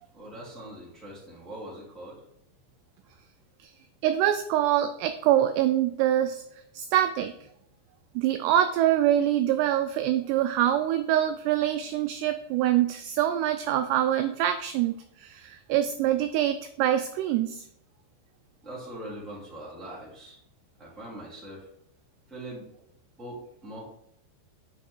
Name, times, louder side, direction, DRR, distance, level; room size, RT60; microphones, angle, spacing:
voice 1, 0.1-2.2 18.6-20.4 20.8-21.7 22.3-22.7 23.2-23.9, right 1 dB, ahead, -6 dB, 2.4 m, -42 dB
voice 2, 4.0-6.4 6.7-7.3 8.2-17.7, right 12 dB, 85° right, 8 dB, 2.4 m, -25 dB
9.8 x 6.1 x 3.8 m, 0.74 s
omnidirectional pair, 5.3 m